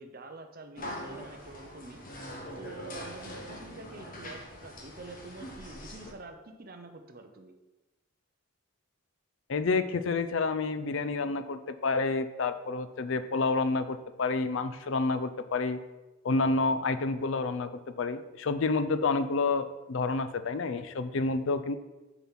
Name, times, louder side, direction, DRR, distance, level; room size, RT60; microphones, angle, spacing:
voice 1, 0.0-2.0 2.6-7.5, right 3 dB, 45° right, 6 dB, 0.7 m, -47 dB
sound 1, 0.8-6.1, equal, 40° left, 1.3 m, -43 dB
voice 2, 9.5-15.8 16.2-17.7 18.0-21.8, left 3 dB, 60° left, 11 dB, 0.4 m, -29 dB
6.9 x 4.6 x 5.7 m, 1.1 s
head